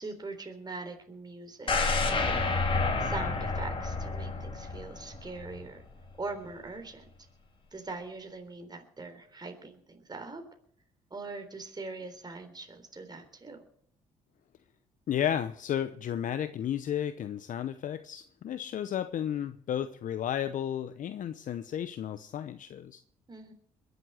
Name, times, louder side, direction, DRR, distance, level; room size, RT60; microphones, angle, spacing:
voice 1, 0.0-2.6 3.0-5.8 6.2-7.1 7.7-10.4 11.1-13.6 23.3-23.5, right 3 dB, 25° right, 5 dB, 3.6 m, -42 dB
sound 1, 1.7-5.7 6.0-6.1, left 3 dB, 35° left, 3.4 m, -29 dB
voice 2, 15.1-23.0, left 10 dB, 60° left, 11 dB, 0.8 m, -33 dB
21.5 x 8.1 x 7.6 m, 0.66 s
supercardioid pair, 60°, 15 cm